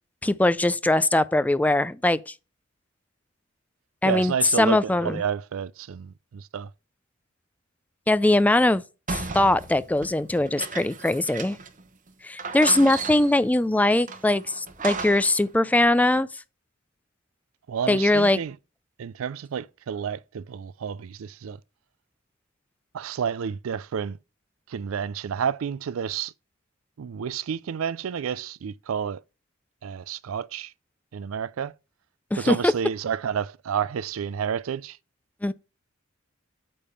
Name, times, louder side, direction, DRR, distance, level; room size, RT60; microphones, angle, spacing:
voice 1, 0.2-2.3 4.0-5.2 8.1-8.8 9.1-11.6 12.2-16.3 17.9-18.4 32.3-32.7 35.4-35.5, left 1 dB, 10° left, 0.4 m, -21 dB
voice 2, 4.0-6.7 17.7-18.6 19.0-21.6 22.9-24.2 24.7-26.3 27.0-29.2 29.8-30.7 31.1-31.7 32.4-35.0, right 7 dB, 85° right, 0.4 m, -30 dB
sound 1, 9.1-11.8 12.1-12.2 12.4-13.5 14.1-15.4, right 4 dB, 40° right, 1.0 m, -35 dB
8.6 x 3.6 x 6.8 m
head